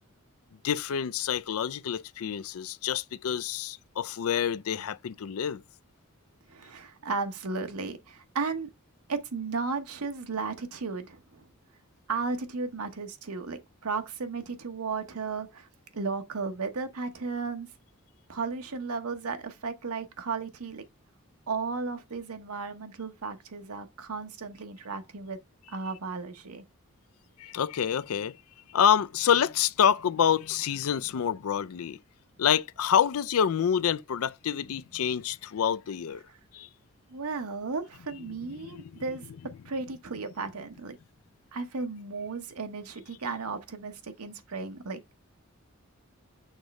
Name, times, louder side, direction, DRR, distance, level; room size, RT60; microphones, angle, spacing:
voice 1, 0.6-5.6 27.4-28.4 28.7-32.0 32.4-36.2 36.5-36.7 38.6-38.9, left 8 dB, 75° left, 0.4 m, -27 dB
voice 2, 6.5-8.7 9.1-11.5 12.1-17.7 18.3-20.8 21.5-25.4 25.7-26.6 36.3-36.4 37.1-39.3 39.6-41.0 41.5-45.0, right 4 dB, 85° right, 1.0 m, -34 dB
6.5 x 3.1 x 5.2 m
head